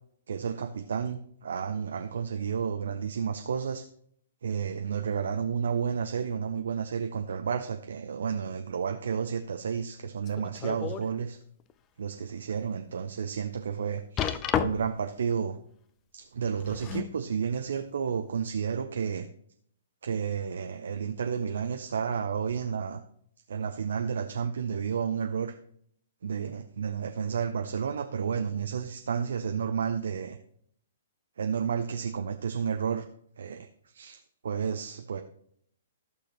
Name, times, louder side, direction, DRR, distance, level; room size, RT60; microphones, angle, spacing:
voice 1, 0.3-3.9 4.4-11.4 12.0-15.6 16.1-19.3 20.0-23.0 23.5-25.6 26.2-30.4 31.4-33.1 33.4-35.2, right 6 dB, 65° right, 7 dB, 0.5 m, -31 dB
sound 1, 10.3-11.1 11.6-11.7 12.3-12.4 14.2-15.1 16.4-17.2 18.1-18.2, left 9 dB, 25° left, 0.5 m, -31 dB
14.0 x 6.4 x 2.9 m, 0.66 s
figure-of-eight pair, 115°, 0 cm